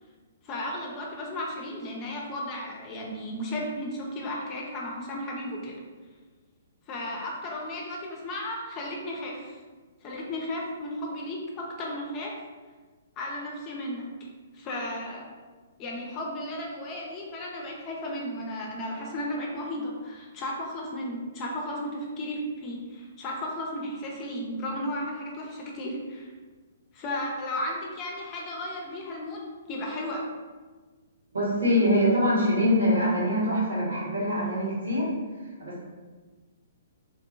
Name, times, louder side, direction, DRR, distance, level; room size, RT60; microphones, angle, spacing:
voice 1, 0.4-5.8 6.9-9.6 10.0-12.3 13.2-14.1 14.5-15.3 15.8-26.3 26.9-30.3, left 1 dB, 25° left, -2 dB, 0.5 m, -34 dB
voice 2, 31.3-35.1 35.6-35.8, equal, 70° right, -7 dB, 1.3 m, -24 dB
2.7 x 2.6 x 2.6 m, 1.4 s
figure-of-eight pair, 120°, 0 cm